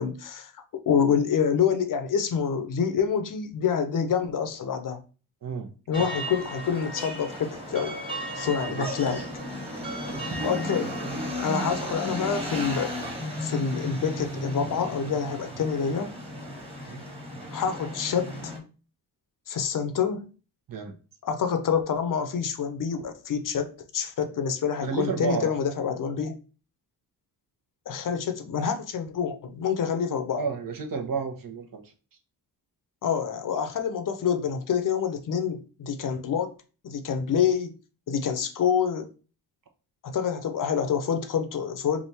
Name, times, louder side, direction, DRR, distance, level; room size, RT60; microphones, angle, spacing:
voice 1, 0.0-5.0 5.9-8.0 8.4-9.3 10.4-11.0 11.4-13.0 13.4-16.2 17.5-18.5 19.5-20.3 21.3-26.3 27.9-30.4 33.0-36.5 36.8-37.8 38.1-39.1 40.0-42.1, left 7 dB, 55° left, 0.7 m, -27 dB
sound 1, 5.9-18.6, equal, 15° right, 1.4 m, -34 dB
voice 2, 10.7-11.4 11.8-12.1 16.9-17.0 20.7-20.9 24.8-25.5 30.4-31.8, right 5 dB, 60° right, 1.0 m, -32 dB
3.5 x 2.5 x 4.2 m
cardioid pair, 85°, 38 cm